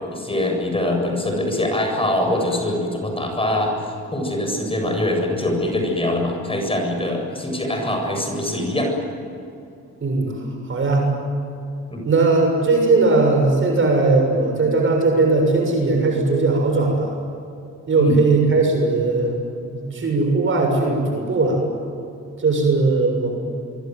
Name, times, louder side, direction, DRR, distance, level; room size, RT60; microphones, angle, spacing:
voice 1, 0.0-8.9 11.9-12.0 17.9-18.2, left 1 dB, 20° left, 2 dB, 7.9 m, -23 dB
voice 2, 10.0-10.3 10.7-11.1 12.1-17.1 17.9-19.3 19.7-21.6 22.4-23.3, right 3 dB, 40° right, 2 dB, 7.0 m, -18 dB
25.0 x 23.5 x 9.7 m, 2.7 s
cardioid pair, 90°, 30 cm